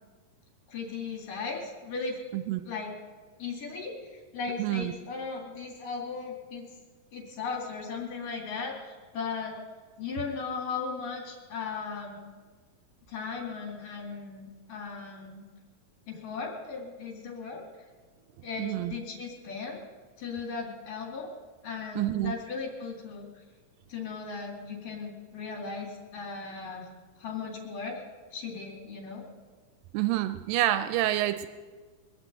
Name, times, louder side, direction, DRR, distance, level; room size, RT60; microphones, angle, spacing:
voice 1, 0.7-2.2 2.6-2.9 3.4-6.7 7.1-9.6 10.0-12.2 13.1-15.4 16.1-17.6 18.4-19.8 20.2-21.3 21.6-23.3 23.9-26.9 27.2-28.0 28.3-29.2, left 5 dB, 75° left, 0 dB, 4.6 m, -37 dB
voice 2, 4.6-4.9 18.6-18.9 22.0-22.3 29.9-31.5, right 14 dB, 85° right, 11 dB, 2.3 m, -27 dB
22.5 x 7.6 x 8.2 m, 1.4 s
omnidirectional pair, 3.9 m